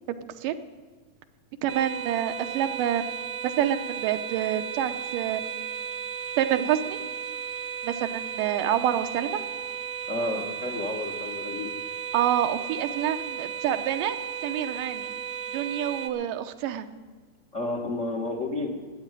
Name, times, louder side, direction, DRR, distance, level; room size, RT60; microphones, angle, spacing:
voice 1, 0.1-0.5 1.6-3.2 3.4-5.5 6.4-7.0 7.8-9.4 12.1-14.2 14.4-15.1 15.5-16.9, right 10 dB, 90° right, 9 dB, 2.5 m, -27 dB
sound 1, 1.7-16.1, right 8 dB, 65° right, 1.5 m, -35 dB
voice 2, 10.1-11.7 17.5-18.7, left 2 dB, 55° left, 3 dB, 0.8 m, -31 dB
13.0 x 9.4 x 8.9 m, 1.5 s
omnidirectional pair, 3.7 m